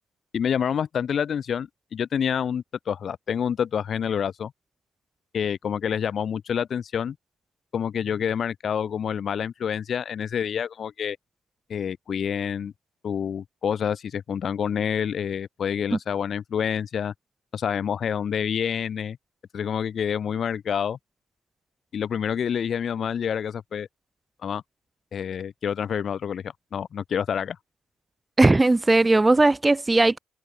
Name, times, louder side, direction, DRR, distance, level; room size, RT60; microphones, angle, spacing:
voice 1, 0.3-4.5 5.3-7.1 7.7-11.2 11.7-12.7 13.0-17.1 17.5-19.2 19.5-21.0 21.9-23.9 24.4-24.6 25.1-27.6, left 8 dB, 55° left, 3.0 m, -27 dB
voice 2, 28.4-30.2, right 2 dB, 20° right, 0.8 m, -18 dB
hypercardioid pair, 60°, 0 cm